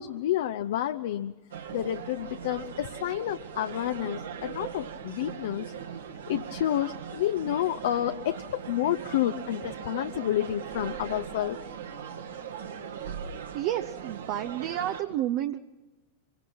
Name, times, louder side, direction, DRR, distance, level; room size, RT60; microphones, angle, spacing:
voice 1, 0.0-1.3 1.7-5.7 6.3-11.6, left 12 dB, 55° left, 9 dB, 0.7 m, -29 dB
sound 1, 1.5-15.0, right 7 dB, 70° right, 2.1 m, -39 dB
voice 2, 13.5-15.6, right 12 dB, 45° right, 8 dB, 0.8 m, -30 dB
25.5 x 23.5 x 6.0 m, 1.1 s
figure-of-eight pair, 90°, 0 cm